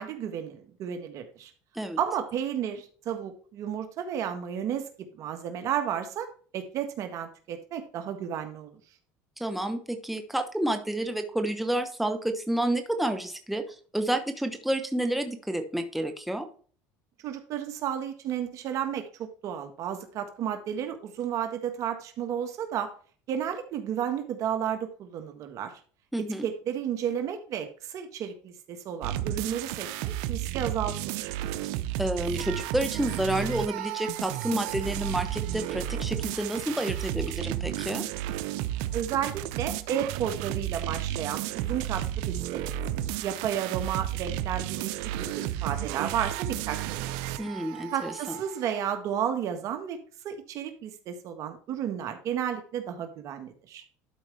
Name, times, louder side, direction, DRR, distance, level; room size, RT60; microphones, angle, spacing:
voice 1, 0.0-1.5 2.0-8.8 17.2-22.9 23.3-25.7 26.2-31.3 38.9-42.7 43.2-47.4 47.9-50.0 50.2-53.8, right 9 dB, 55° right, 7 dB, 1.5 m, -32 dB
voice 2, 9.4-16.5 26.1-26.5 32.0-38.0 47.4-48.4, right 1 dB, ahead, 6 dB, 1.1 m, -30 dB
sound 1, 29.0-48.9, right 13 dB, 80° right, 0.7 m, -33 dB
12.0 x 5.0 x 3.4 m, 0.43 s
supercardioid pair, 110°, 7 cm